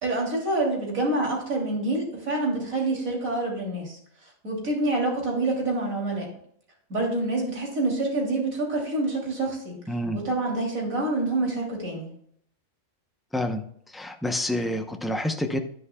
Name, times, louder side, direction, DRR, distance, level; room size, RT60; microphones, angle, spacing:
voice 1, 0.0-6.3 6.9-9.8 10.1-12.1, right 2 dB, 90° right, -1 dB, 3.4 m, -27 dB
voice 2, 9.9-10.2 13.3-13.6 13.9-15.6, left 1 dB, ahead, 5 dB, 0.4 m, -28 dB
10.5 x 10.0 x 2.3 m, 0.66 s
omnidirectional pair, 1.4 m